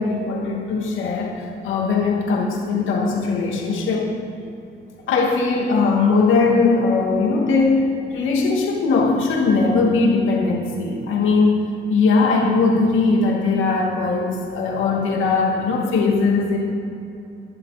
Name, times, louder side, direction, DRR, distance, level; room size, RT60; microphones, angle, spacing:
voice 1, 0.0-4.1 5.1-16.6, left 4 dB, 85° left, -1 dB, 2.4 m, -20 dB
16.0 x 11.0 x 4.3 m, 2.7 s
cardioid pair, 90°, 20 cm